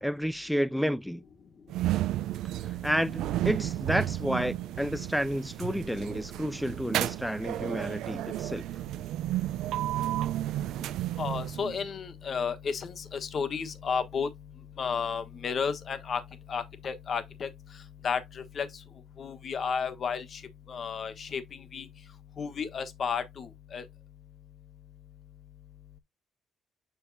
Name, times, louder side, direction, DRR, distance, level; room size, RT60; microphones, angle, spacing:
voice 1, 0.0-1.2 2.6-8.7 10.8-10.9, equal, ahead, 0.4 m, -31 dB
sound 1, 1.7-11.9, right 14 dB, 90° right, 0.4 m, -32 dB
voice 2, 11.2-14.3 14.8-16.2 16.5-17.5 18.0-18.7 19.2-20.4 20.7-21.4 21.7-21.9 22.4-23.8, left 6 dB, 50° left, 1.2 m, -32 dB
7.1 x 6.4 x 2.7 m
cardioid pair, 110°, 0 cm